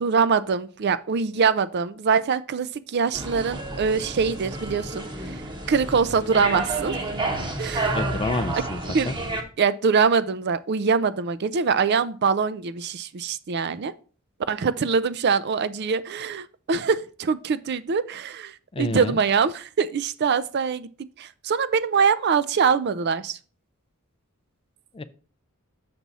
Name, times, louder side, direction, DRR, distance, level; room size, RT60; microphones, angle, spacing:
voice 1, 0.0-5.1 5.7-7.0 7.6-8.0 8.6-8.7 8.9-9.1 9.6-13.9 14.5-20.9 21.2-23.4, right 5 dB, 50° right, 0.4 m, -23 dB
sound 1, 3.1-9.4, right 2 dB, 20° right, 1.0 m, -30 dB
voice 2, 7.9-9.2 18.7-19.2 24.9-25.0, left 2 dB, 25° left, 0.4 m, -29 dB
6.9 x 6.1 x 4.1 m
head